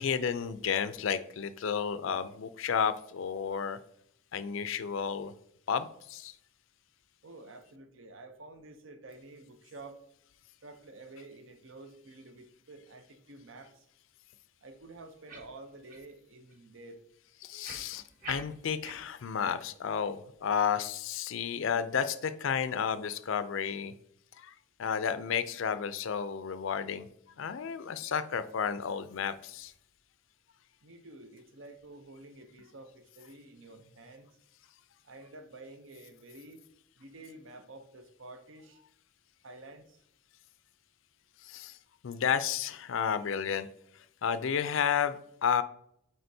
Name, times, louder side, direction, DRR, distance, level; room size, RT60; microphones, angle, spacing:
voice 1, 0.0-3.8 4.3-5.3 5.7-6.3 17.4-23.9 24.4-24.5 24.8-27.1 27.4-29.7 41.4-41.8 42.0-43.7 44.2-45.6, left 7 dB, 65° left, 13 dB, 0.4 m, -32 dB
voice 2, 7.2-10.0 10.6-13.8 14.6-17.0 30.8-34.3 35.0-36.6 37.0-38.8 39.4-40.0, right 2 dB, 65° right, 8 dB, 0.7 m, -50 dB
sound 1, 15.3-15.5 15.9-16.0 16.5-16.6 17.6-19.0 19.4-19.5 20.0-20.1, right 3 dB, 40° right, 1.2 m, -45 dB
7.8 x 4.6 x 2.7 m, 0.74 s
head